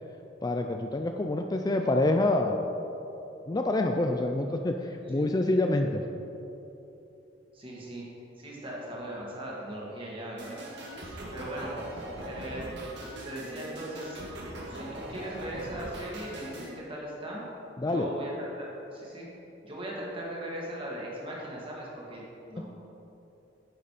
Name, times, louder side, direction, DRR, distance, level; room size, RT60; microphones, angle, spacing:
voice 1, 0.4-2.6 3.5-6.0 17.8-18.1, left 2 dB, 20° left, 4 dB, 0.4 m, -27 dB
voice 2, 7.5-8.0 8.4-12.7 13.0-14.2 14.5-17.4 17.9-19.3 19.6-22.7, right 1 dB, 30° right, -4 dB, 2.2 m, -39 dB
sound 1, 10.4-16.7, right 1 dB, 70° right, 1.7 m, -41 dB
10.0 x 6.8 x 5.0 m, 3.0 s
head